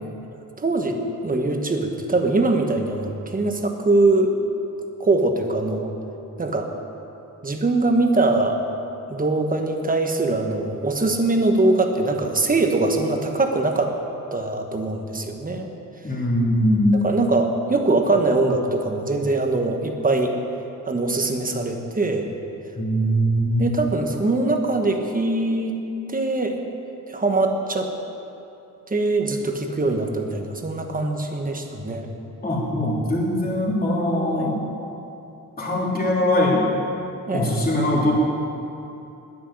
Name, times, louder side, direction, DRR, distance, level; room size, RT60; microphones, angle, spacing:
voice 1, 0.6-4.3 5.0-5.9 6.4-6.7 7.4-8.6 9.1-13.9 14.3-15.7 16.9-20.3 20.8-22.3 23.6-25.8 26.1-26.6 27.1-27.9 28.9-32.1 34.4-34.5 37.3-37.7, right 2 dB, 25° right, 3 dB, 1.2 m, -22 dB
voice 2, 16.0-17.0 22.7-23.9 32.4-34.6 35.6-36.7 37.3-38.1, left 1 dB, 25° left, -5 dB, 3.0 m, -21 dB
10.5 x 10.0 x 9.9 m, 2.8 s
wide cardioid pair, 160°, 34 cm